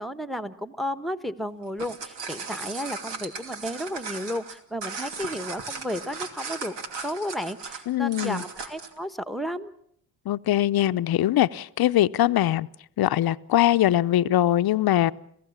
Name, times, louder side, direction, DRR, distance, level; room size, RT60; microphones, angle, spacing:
voice 1, 0.0-6.7 7.0-9.7, equal, ahead, 1.3 m, -33 dB
sound 1, 1.6-9.0, right 5 dB, 75° right, 2.8 m, -37 dB
voice 2, 7.9-8.4 10.3-12.7 13.0-15.1, left 13 dB, 55° left, 0.8 m, -22 dB
29.5 x 15.5 x 7.3 m
cardioid pair, 80°, 43 cm